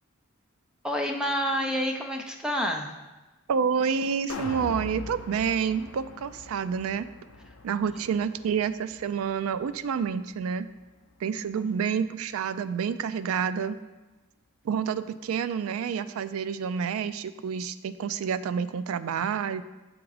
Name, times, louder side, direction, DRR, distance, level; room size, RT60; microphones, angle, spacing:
voice 1, 0.8-2.9, equal, 5° right, 2 dB, 0.5 m, -28 dB
voice 2, 3.5-7.1 7.6-10.7 11.2-13.8 14.6-19.6, right 7 dB, 80° right, 14 dB, 0.3 m, -28 dB
sound 1, 4.3-10.5 10.9-11.0, left 3 dB, 75° left, 0.5 m, -42 dB
6.9 x 3.6 x 4.8 m, 1.1 s
head